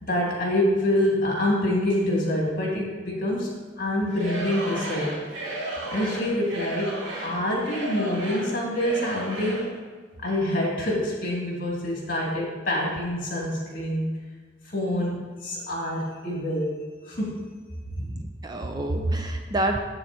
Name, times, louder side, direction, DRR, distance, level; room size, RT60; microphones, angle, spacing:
voice 1, 0.0-5.1 5.9-6.9 7.2-9.7 10.2-14.1 14.7-16.7 17.0-17.4, left 1 dB, 50° left, -3 dB, 2.7 m, -26 dB
Singing / Crowd, 4.1-9.8, right 1 dB, 75° right, 1.8 m, -34 dB
voice 2, 18.0-19.8, right 1 dB, 20° right, 4 dB, 0.5 m, -27 dB
7.9 x 6.8 x 4.4 m, 1.5 s
head